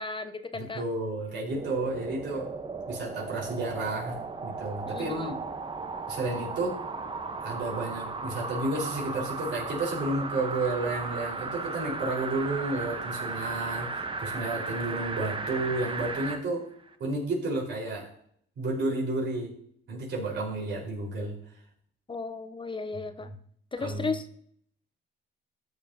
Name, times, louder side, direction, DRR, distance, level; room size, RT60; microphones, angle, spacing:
voice 1, 0.0-0.8 4.9-5.3 22.1-23.3 23.7-24.2, left 4 dB, 25° left, 10 dB, 0.6 m, -35 dB
voice 2, 0.5-2.5 2.9-5.3 6.1-6.8 7.4-16.7 17.0-18.1 18.6-19.5 19.9-21.4 23.8-24.1, right 2 dB, 65° right, -2 dB, 4.3 m, -31 dB
sound 1, 1.4-16.4 16.9-17.0, right 3 dB, 25° right, 0.9 m, -36 dB
14.0 x 7.1 x 2.8 m, 0.65 s
cardioid pair, 90°, 20 cm